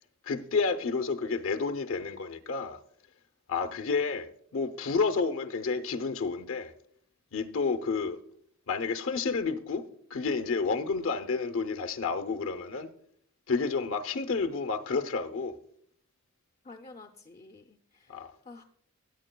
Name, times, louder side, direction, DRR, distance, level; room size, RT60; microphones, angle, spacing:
voice 1, 0.3-2.8 3.5-6.7 7.3-8.2 8.7-9.8 10.1-12.9 13.5-15.5 18.1-18.3, left 4 dB, 75° left, 0.7 m, -30 dB
voice 2, 16.6-18.6, left 3 dB, 30° left, 0.5 m, -50 dB
16.0 x 9.5 x 2.2 m
head